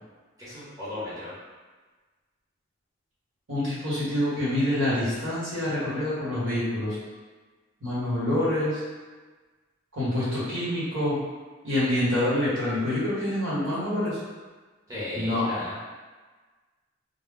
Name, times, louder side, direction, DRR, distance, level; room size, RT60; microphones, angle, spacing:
voice 1, 0.4-1.3 14.9-15.8, left 1 dB, 15° right, -11 dB, 1.0 m, -35 dB
voice 2, 3.5-7.0 7.8-8.8 9.9-11.2 11.6-14.2 15.1-15.6, left 1 dB, 70° right, -9 dB, 1.3 m, -26 dB
2.2 x 2.1 x 3.6 m, 1.3 s
head